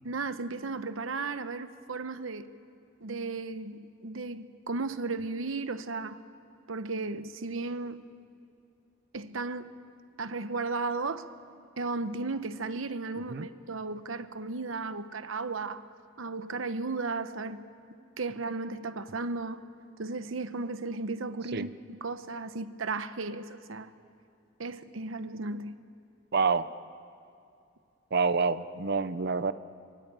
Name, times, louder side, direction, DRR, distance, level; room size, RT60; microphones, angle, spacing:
voice 1, 0.0-2.5 3.0-6.2 6.7-8.0 9.1-9.8 10.2-11.3 11.8-15.9 16.2-17.6 18.2-19.7 20.0-21.7 22.0-23.9 24.6-25.8, right 3 dB, 90° right, 1.0 m, -35 dB
voice 2, 26.3-26.7 28.1-29.5, right 4 dB, 55° right, 0.7 m, -27 dB
24.5 x 21.5 x 9.0 m
head